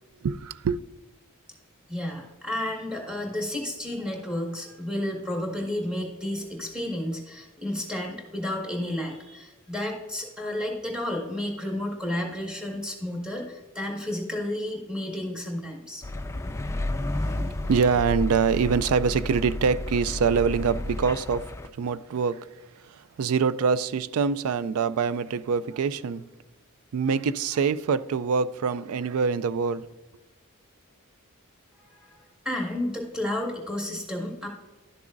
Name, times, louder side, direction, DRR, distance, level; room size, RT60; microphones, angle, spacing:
voice 1, 0.2-0.8 17.0-26.2 26.9-29.8, right 5 dB, 70° right, 0.4 m, -25 dB
voice 2, 1.9-16.0 31.8-34.5, left 1 dB, 5° right, 1.7 m, -32 dB
sound 1, 16.0-21.7, left 1 dB, 10° left, 0.4 m, -32 dB
12.0 x 6.9 x 2.6 m
head